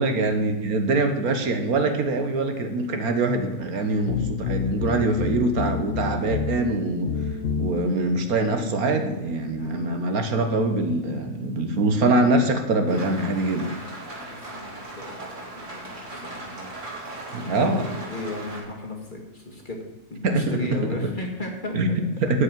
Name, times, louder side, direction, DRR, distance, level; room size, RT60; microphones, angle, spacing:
voice 1, 0.0-7.1 7.6-13.7 17.3-17.9 20.2-20.6 21.0-21.1 21.7-22.4, right 2 dB, 70° right, 6 dB, 1.7 m, -23 dB
sound 1, 4.0-8.1, left 6 dB, 65° left, 0.6 m, -29 dB
voice 2, 9.6-10.0 14.2-17.0 17.3-19.8 20.1-21.8, left 2 dB, 30° left, 1 dB, 2.1 m, -36 dB
Rain, 12.9-18.6, right 2 dB, 50° right, 2.9 m, -38 dB
12.0 x 5.6 x 9.1 m, 1.1 s
omnidirectional pair, 1.7 m